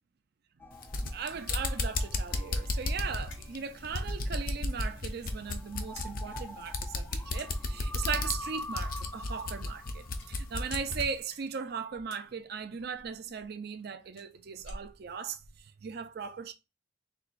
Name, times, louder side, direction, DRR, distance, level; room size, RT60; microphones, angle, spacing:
sound 1, 0.6-11.6, left 1 dB, 10° left, 0.3 m, -47 dB
sound 2, 0.7-11.1, left 2 dB, 50° left, 0.6 m, -34 dB
voice 1, 1.1-16.5, right 6 dB, 55° right, 0.4 m, -38 dB
sound 3, 1.4-15.6, left 2 dB, 90° left, 1.8 m, -53 dB
4.4 x 3.5 x 2.5 m
head